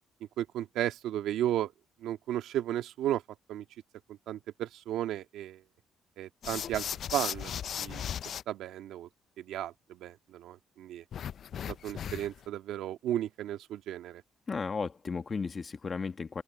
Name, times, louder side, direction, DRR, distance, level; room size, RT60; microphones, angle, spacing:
voice 1, 0.4-1.7 2.0-3.2 3.5-3.6 4.3-5.6 6.2-6.8 7.1-8.0 8.5-9.1 9.4-11.0 11.7-14.2, right 12 dB, 85° right, 1.8 m, -34 dB
sound 1, 6.4-8.4 11.1-12.4, left 9 dB, 60° left, 0.3 m, -37 dB
voice 2, 14.5-16.4, left 5 dB, 35° left, 1.5 m, -34 dB
open air
cardioid pair, 90°, 0 cm